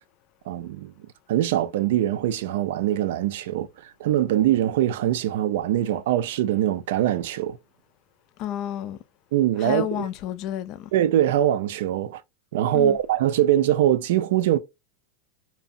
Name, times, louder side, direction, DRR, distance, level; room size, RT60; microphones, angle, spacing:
voice 1, 0.5-0.9 1.3-7.6 9.3-10.1 10.9-12.2 12.5-14.6, right 12 dB, 75° right, 0.3 m, -23 dB
voice 2, 8.4-9.0 9.6-10.9 12.7-13.0, left 11 dB, 45° left, 0.3 m, -30 dB
2.6 x 2.1 x 2.5 m
supercardioid pair, 130°, 0 cm